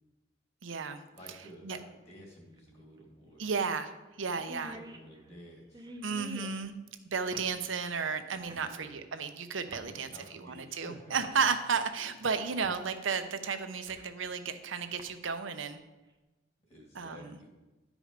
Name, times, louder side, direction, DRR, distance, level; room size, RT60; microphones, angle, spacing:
voice 1, 0.6-1.0 1.6-1.8 3.4-4.8 6.0-6.7 7.1-10.1 10.3-15.8 16.9-17.3, right 5 dB, 80° right, 9 dB, 0.8 m, -33 dB
sound 1, 0.7-0.8 2.5-2.6 3.0-3.1 3.6-3.8 4.1-4.2 4.4-6.6 7.3-7.5 8.5-8.7 9.7-9.9 10.7-10.8 11.2-11.4 12.6-12.8 13.2-14.2 14.8-15.0, equal, 20° right, 0.7 m, -47 dB
voice 2, 1.1-3.4 4.3-6.2 8.5-9.1 9.8-11.2 12.3-12.4 16.7-17.5, equal, 30° left, -1 dB, 2.3 m, -52 dB
11.5 x 5.0 x 5.1 m, 1.1 s
head